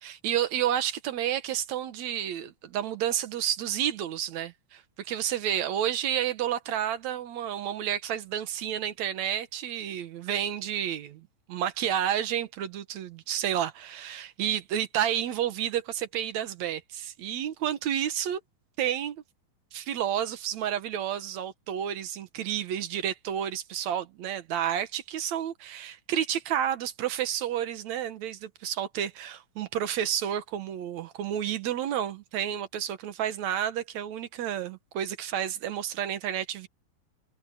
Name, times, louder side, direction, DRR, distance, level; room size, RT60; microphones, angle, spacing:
voice 1, 0.0-18.4 18.8-19.2 19.7-36.7, right 10 dB, 65° right, 2.1 m, -30 dB
omnidirectional pair, 4.1 m